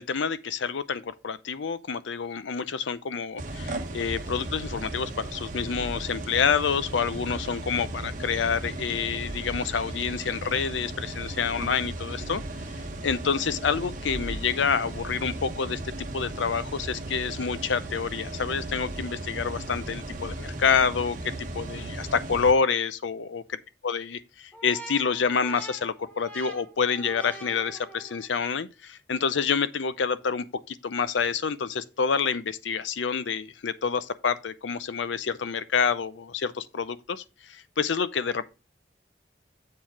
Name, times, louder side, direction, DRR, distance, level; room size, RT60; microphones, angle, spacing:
voice 1, 0.0-12.4 13.0-23.4 23.8-38.4, left 6 dB, 85° left, 0.6 m, -28 dB
sound 1, 3.4-22.5, right 1 dB, 45° right, 1.0 m, -36 dB
sound 2, 24.5-28.4, right 2 dB, 10° left, 1.1 m, -44 dB
7.6 x 4.5 x 4.6 m
head